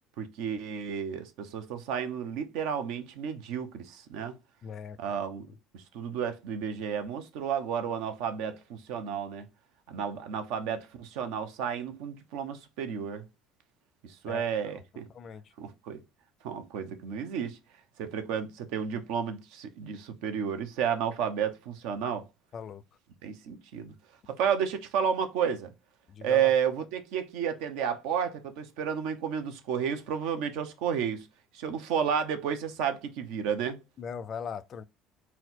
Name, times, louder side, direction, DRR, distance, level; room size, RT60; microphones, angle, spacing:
voice 1, 0.2-4.4 5.0-5.5 5.7-9.5 9.9-13.2 14.0-15.1 15.6-16.0 16.4-17.6 18.0-22.2 23.2-23.9 24.3-25.7 26.2-31.3 31.5-33.8, right 8 dB, 80° right, 0.8 m, -31 dB
voice 2, 4.6-5.0 14.3-14.4 15.1-15.4 22.5-22.8 26.1-26.5 34.0-34.8, left 6 dB, 40° left, 0.4 m, -39 dB
4.2 x 2.2 x 4.2 m
cardioid pair, 120°, 0 cm